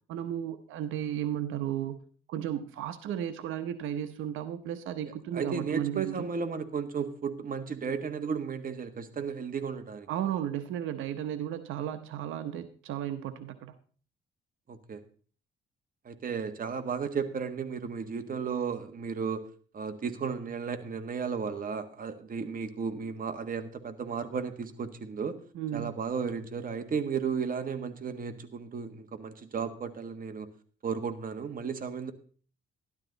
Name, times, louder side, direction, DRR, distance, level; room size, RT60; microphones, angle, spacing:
voice 1, 0.1-2.0 2.3-6.2 10.1-13.7 25.5-25.9, right 10 dB, 85° right, 9 dB, 1.0 m, -34 dB
voice 2, 5.3-10.1 14.7-15.0 16.0-19.5 19.7-25.4 25.7-30.5 30.8-32.1, right 6 dB, 45° right, 8 dB, 1.6 m, -34 dB
12.5 x 12.5 x 4.0 m, 0.42 s
cardioid pair, 90°, 20 cm